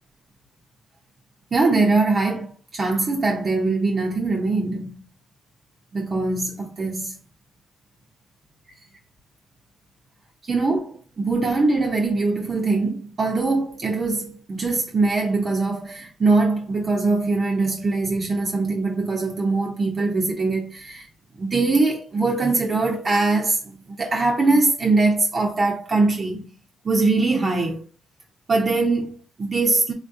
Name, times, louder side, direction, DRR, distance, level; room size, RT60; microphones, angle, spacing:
voice 1, 1.5-5.0 5.9-7.2 10.4-21.1 21.4-26.5 26.8-27.8 28.5-29.9, right 3 dB, 35° right, 0.6 m, -22 dB
3.6 x 2.4 x 2.6 m
cardioid pair, 90°, 0 cm